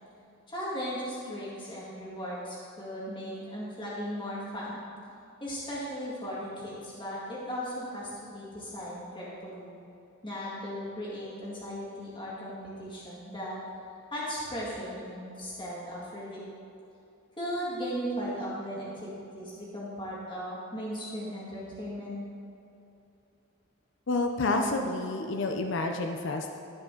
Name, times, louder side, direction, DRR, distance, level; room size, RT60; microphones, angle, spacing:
voice 1, 0.5-4.8 5.4-9.7 10.2-13.6 14.1-16.4 17.4-22.2, equal, 25° left, -7 dB, 2.0 m, -37 dB
voice 2, 24.1-26.5, left 2 dB, 60° left, 4 dB, 0.6 m, -29 dB
14.5 x 5.0 x 3.8 m, 2.8 s
head